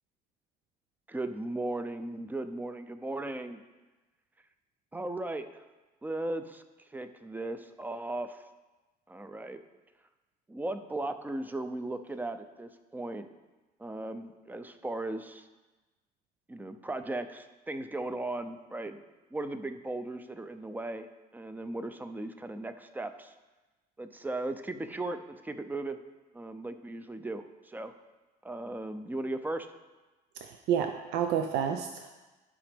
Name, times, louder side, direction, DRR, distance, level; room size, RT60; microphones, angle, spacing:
voice 1, 1.1-3.6 4.9-5.6 6.0-6.6 6.9-8.4 9.1-9.6 10.5-13.3 13.8-15.5 16.5-19.0 19.3-23.3 24.0-26.0 26.3-27.9 28.4-29.7, right 2 dB, 10° right, 9 dB, 0.5 m, -37 dB
voice 2, 30.4-32.2, right 8 dB, 85° right, 6 dB, 0.5 m, -30 dB
11.5 x 5.0 x 3.5 m, 1.2 s
cardioid pair, 110°, 17 cm